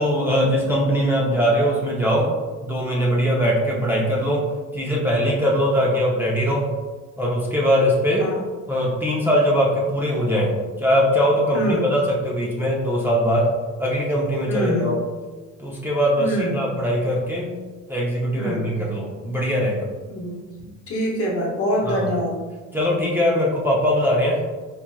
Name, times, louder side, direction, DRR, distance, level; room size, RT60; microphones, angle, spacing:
voice 1, 0.0-2.3 2.6-4.5 4.7-6.7 7.2-8.3 8.7-13.5 13.8-15.0 15.6-17.5 17.9-19.9 21.8-22.1 22.7-24.4, equal, 5° right, -5 dB, 0.6 m, -21 dB
voice 2, 14.5-14.9 16.2-16.5 18.4-18.6 20.1-22.3, equal, 50° left, -2 dB, 1.0 m, -25 dB
4.5 x 2.5 x 2.3 m, 1.3 s
cardioid pair, 90°, 30 cm